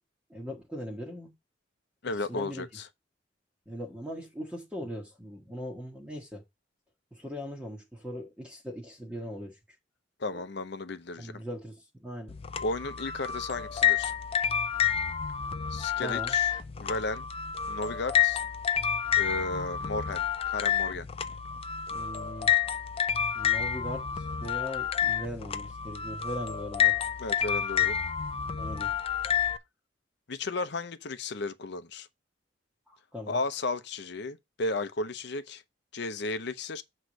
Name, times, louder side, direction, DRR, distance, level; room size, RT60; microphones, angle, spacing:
voice 1, 0.3-1.3 2.2-2.7 3.7-6.4 7.1-9.6 10.3-10.4 11.2-12.4 16.0-16.6 21.9-22.5 23.3-27.0 28.5-29.5 32.9-33.4, equal, 5° right, 1.2 m, -40 dB
voice 2, 2.0-2.9 10.2-11.4 12.6-14.1 15.7-16.5 16.8-17.3 17.7-18.4 19.2-21.1 27.2-28.0 30.3-32.1 33.3-35.6 35.9-36.8, left 3 dB, 65° left, 0.7 m, -34 dB
sound 1, 12.3-29.6, left 9 dB, 30° left, 0.4 m, -29 dB
7.9 x 3.2 x 6.1 m
head